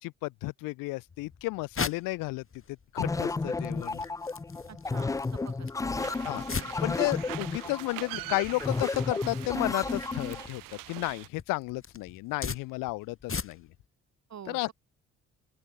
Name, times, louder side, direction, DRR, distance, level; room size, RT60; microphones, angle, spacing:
voice 1, 0.0-2.4 2.9-4.0 6.2-6.4 6.8-10.6 10.9-13.7 14.5-14.7, left 22 dB, 80° left, 0.6 m, -32 dB
sound 1, 1.1-13.9, left 5 dB, 40° left, 7.5 m, -42 dB
sound 2, 3.0-10.5, left 3 dB, 10° left, 0.3 m, -32 dB
voice 2, 4.7-6.1 6.5-6.7 14.3-14.6, right 9 dB, 55° right, 2.9 m, -47 dB
sound 3, 6.0-11.3, right 20 dB, 90° right, 4.7 m, -43 dB
open air
supercardioid pair, 60°, 32 cm